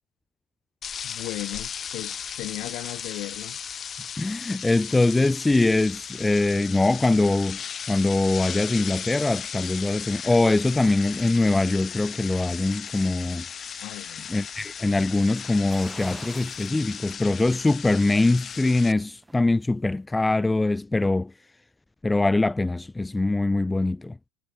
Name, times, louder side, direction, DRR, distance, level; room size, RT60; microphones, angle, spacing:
sound 1, 0.8-18.9, left 7 dB, 30° left, 6.3 m, -36 dB
voice 1, 1.0-3.6 13.8-14.3, left 20 dB, 55° left, 5.8 m, -36 dB
voice 2, 4.2-13.4 14.3-21.3 22.0-24.2, left 2 dB, 10° left, 0.5 m, -23 dB
sound 2, 15.7-16.8 17.2-17.3 18.8-19.6 19.9-20.0, right 2 dB, 10° right, 3.2 m, -44 dB
hypercardioid pair, 100°, 0 cm